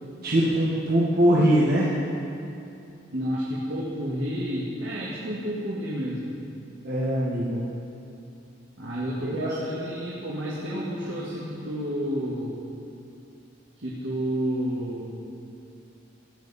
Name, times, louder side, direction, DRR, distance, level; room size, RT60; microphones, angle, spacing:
voice 1, 0.2-1.9 6.8-7.6 9.2-9.5, right 1 dB, 55° right, -7 dB, 1.4 m, -22 dB
voice 2, 3.1-6.4 8.8-12.6 13.8-15.1, equal, 80° right, -6 dB, 1.7 m, -30 dB
15.5 x 9.1 x 4.2 m, 2.6 s
head